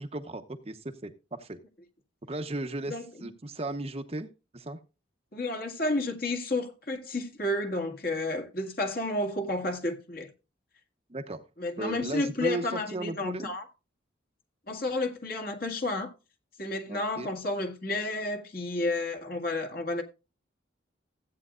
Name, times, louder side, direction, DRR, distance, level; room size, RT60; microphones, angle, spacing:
voice 1, 0.0-1.6 2.3-4.3 4.5-4.8 11.1-11.4 11.8-13.5 16.9-17.3, right 2 dB, 30° right, 0.9 m, -36 dB
voice 2, 2.9-3.3 5.3-10.3 11.6-13.7 14.7-16.1 16.6-20.0, left 2 dB, 50° left, 2.0 m, -31 dB
15.5 x 8.7 x 2.5 m
head